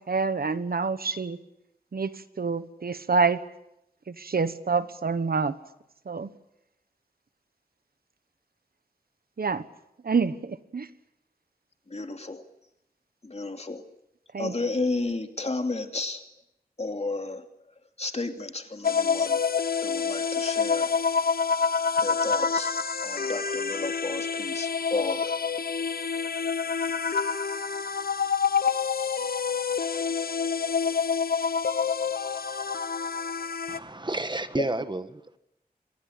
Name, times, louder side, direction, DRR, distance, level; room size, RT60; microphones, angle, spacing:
voice 1, 0.0-1.4 1.9-3.4 4.1-5.6 6.0-6.3 9.4-9.6 10.0-10.9 14.3-14.5, right 4 dB, 70° right, 12 dB, 1.3 m, -27 dB
voice 2, 11.9-12.4 13.2-13.8 14.4-16.2 16.8-17.4 18.0-19.4 19.8-20.9 22.0-22.7 23.0-25.2 34.6-34.7, left 3 dB, 40° left, 6 dB, 2.7 m, -32 dB
sound 1, 18.8-33.8, left 6 dB, 70° left, 1.0 m, -27 dB
voice 3, 33.7-35.4, right 2 dB, 30° right, 11 dB, 1.4 m, -31 dB
27.0 x 21.5 x 8.8 m, 0.83 s
wide cardioid pair, 80°, 16 cm